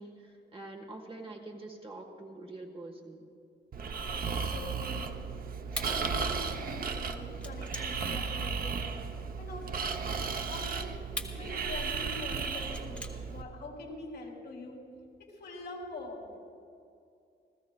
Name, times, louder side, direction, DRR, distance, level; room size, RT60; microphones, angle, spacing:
voice 1, 0.0-3.3, right 2 dB, 30° right, 2 dB, 1.3 m, -45 dB
Breathing, 3.7-13.4, right 5 dB, 50° right, 0.7 m, -35 dB
voice 2, 4.1-5.1 5.7-9.0 9.4-10.0 10.5-10.9 11.3-14.8 15.2-16.3, left 2 dB, 60° left, -1 dB, 3.0 m, -44 dB
sound 1, 4.2-9.6 10.2-13.7, left 1 dB, 5° left, 1.0 m, -45 dB
29.0 x 14.5 x 2.3 m, 2.5 s
wide cardioid pair, 165°, 19 cm